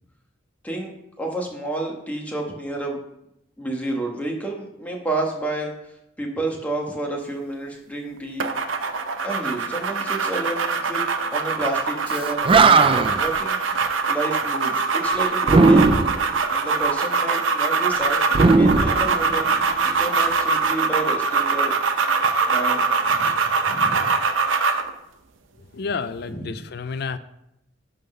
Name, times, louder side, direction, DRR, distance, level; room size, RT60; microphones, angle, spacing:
voice 1, 0.6-3.0 3.6-5.7 6.2-8.5 9.2-13.6 14.1-15.9 16.5-18.2 18.5-19.6 19.8-21.7 22.5-23.3 23.6-24.1 26.3-26.6, right 2 dB, 10° left, 0 dB, 1.2 m, -30 dB
sound 1, 8.4-24.9, right 4 dB, 90° right, 0.7 m, -23 dB
Animal, 12.1-12.2 12.4-13.3 15.4-16.3 18.3-19.6, right 3 dB, 25° right, 0.3 m, -16 dB
voice 2, 25.7-27.2, left 5 dB, 55° left, 12 dB, 0.4 m, -30 dB
10.5 x 3.9 x 5.5 m, 0.83 s
head